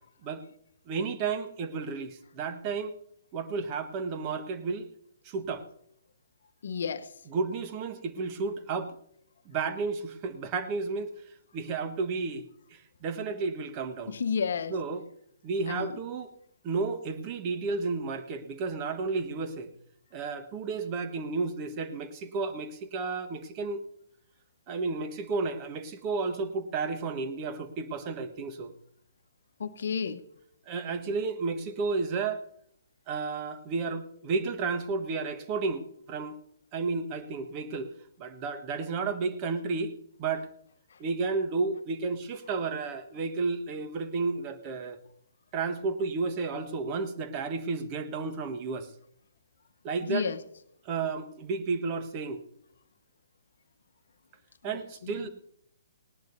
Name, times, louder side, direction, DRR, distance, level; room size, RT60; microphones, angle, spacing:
voice 1, 0.9-3.0 3.3-4.9 5.2-5.7 7.3-8.9 9.4-11.1 11.5-14.2 14.7-15.0 15.4-16.3 16.6-19.7 20.1-23.8 24.7-28.7 30.7-32.4 33.1-36.4 36.7-37.9 38.2-40.5 41.0-45.0 45.5-48.9 49.8-50.3 50.8-52.4 54.6-55.3, right 4 dB, 30° right, 9 dB, 1.5 m, -32 dB
voice 2, 6.6-7.1 14.1-14.7 15.7-15.9 29.6-30.2 50.1-50.4 54.7-55.3, left 6 dB, 60° left, 10 dB, 1.0 m, -31 dB
19.0 x 18.5 x 2.7 m, 0.69 s
figure-of-eight pair, 125°, 0 cm